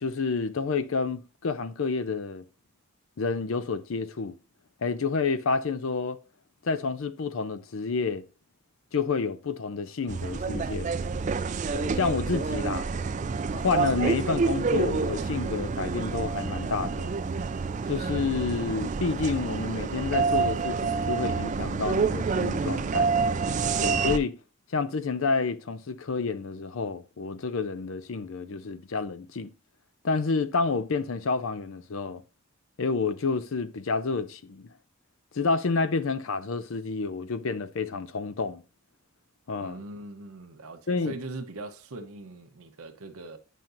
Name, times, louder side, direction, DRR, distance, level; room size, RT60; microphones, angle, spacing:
voice 1, 0.0-2.4 3.2-4.4 4.8-6.2 6.6-8.2 8.9-10.9 11.7-12.9 13.5-17.1 17.9-23.1 23.8-24.3 24.7-29.5 30.0-32.2 32.8-34.7 35.3-38.6 39.5-39.8 40.9-41.1, left 4 dB, 65° left, 0.5 m, -29 dB
sound 1, 10.1-24.2, right 4 dB, 35° right, 0.3 m, -28 dB
voice 2, 39.6-43.4, right 2 dB, 85° right, 0.8 m, -41 dB
9.2 x 5.8 x 2.5 m
head